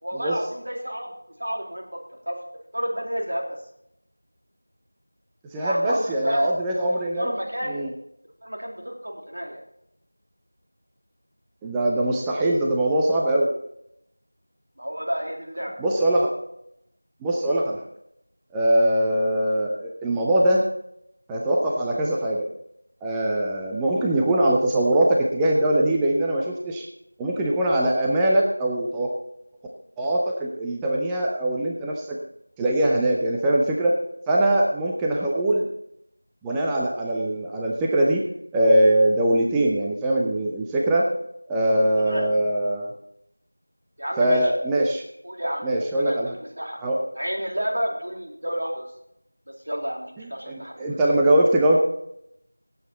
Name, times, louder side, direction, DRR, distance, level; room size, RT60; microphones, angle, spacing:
voice 1, 0.0-1.1 1.4-2.0 2.3-2.4 2.7-3.4 5.6-6.5 7.2-7.8 8.4-9.6 14.8-15.7 19.1-19.3 35.2-35.3 42.0-42.3 44.0-44.5 45.2-45.7 46.0-46.8 47.1-48.9 49.5-51.0, equal, 45° right, 0 dB, 2.9 m, -30 dB
voice 2, 5.5-7.3 7.7-7.9 11.6-13.5 15.8-16.3 17.2-17.8 18.5-20.7 21.3-22.5 23.0-26.9 27.2-29.1 30.0-32.2 32.6-33.9 34.3-35.7 36.4-38.3 38.5-41.1 41.5-42.9 44.2-45.0 45.6-46.3 46.8-47.0 50.2-51.8, right 1 dB, 5° right, -2 dB, 0.4 m, -22 dB
17.0 x 8.0 x 4.1 m, 0.78 s
figure-of-eight pair, 175°, 0 cm